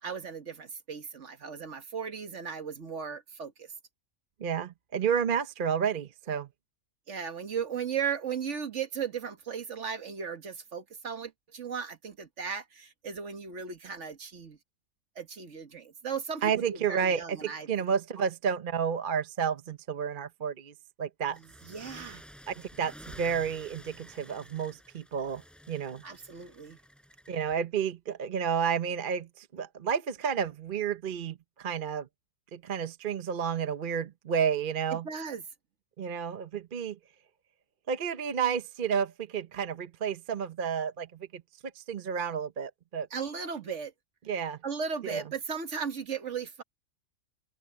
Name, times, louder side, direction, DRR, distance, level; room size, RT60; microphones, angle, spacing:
voice 1, 0.0-3.7 7.1-14.6 15.1-17.8 18.2-18.3 21.3-22.2 26.0-26.8 34.9-35.4 43.1-43.9 44.6-46.6, right 6 dB, 60° right, 1.7 m, -36 dB
voice 2, 4.4-6.5 16.4-20.7 21.0-21.4 22.5-25.4 25.7-26.0 27.3-32.1 32.5-35.0 36.0-37.0 37.9-41.1 41.3-41.4 41.8-43.1 44.3-44.6 45.0-45.2, right 7 dB, 45° right, 0.9 m, -31 dB
sound 1, 21.3-27.5, equal, ahead, 6.6 m, -51 dB
omnidirectional pair, 1.4 m